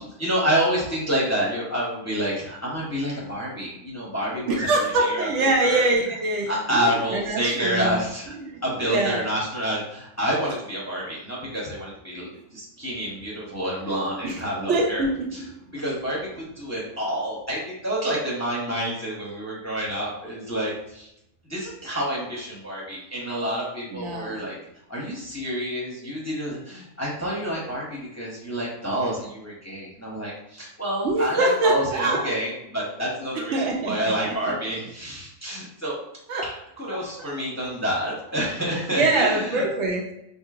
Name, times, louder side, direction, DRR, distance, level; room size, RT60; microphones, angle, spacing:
voice 1, 0.2-5.8 6.5-8.3 8.6-15.0 15.3-15.4 15.7-21.1 21.5-24.6 24.9-36.0 36.4-39.7, equal, 15° left, -5 dB, 0.7 m, -28 dB
voice 2, 4.5-8.0 8.3-9.2 14.2-14.4 14.7-15.5 23.9-24.4 31.0-32.3 33.3-34.6 36.3-36.5 36.9-37.3 38.9-40.1, right 2 dB, 70° right, 1 dB, 0.9 m, -24 dB
4.4 x 2.7 x 2.4 m, 0.82 s
omnidirectional pair, 1.4 m